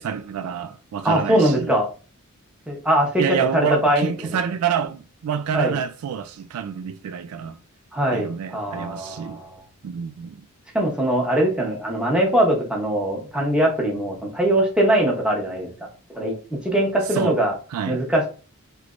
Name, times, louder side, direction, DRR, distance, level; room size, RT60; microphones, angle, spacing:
voice 1, 0.0-1.8 3.2-7.6 8.1-9.4 9.8-10.4 17.1-17.4 17.7-18.0, right 7 dB, 75° right, 0.3 m, -28 dB
voice 2, 1.0-1.9 2.7-4.1 5.5-5.8 7.9-9.5 10.7-15.7 16.1-16.4 16.6-17.5 17.9-18.3, right 1 dB, 5° right, 0.9 m, -21 dB
3.2 x 3.1 x 2.5 m
head